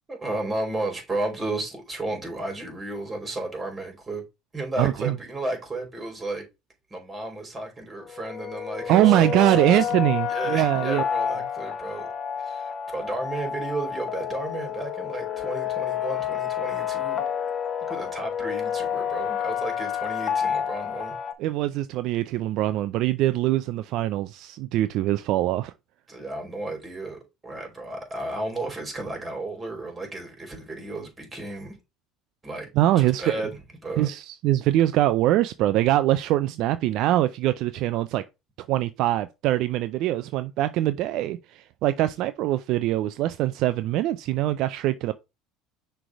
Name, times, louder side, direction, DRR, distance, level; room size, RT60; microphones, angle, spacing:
voice 1, 0.1-4.2 4.5-6.4 6.9-10.0 10.3-12.1 12.4-17.2 17.8-21.2 26.1-31.8 32.4-32.7 32.9-34.1, right 2 dB, 20° right, 3.4 m, -33 dB
voice 2, 4.8-5.1 8.9-11.0 21.4-25.7 32.8-33.4 34.0-38.2 38.7-45.1, right 14 dB, 65° right, 0.4 m, -23 dB
sound 1, 8.0-21.3, left 8 dB, 40° left, 1.2 m, -29 dB
6.1 x 3.4 x 4.5 m
supercardioid pair, 85°, 0 cm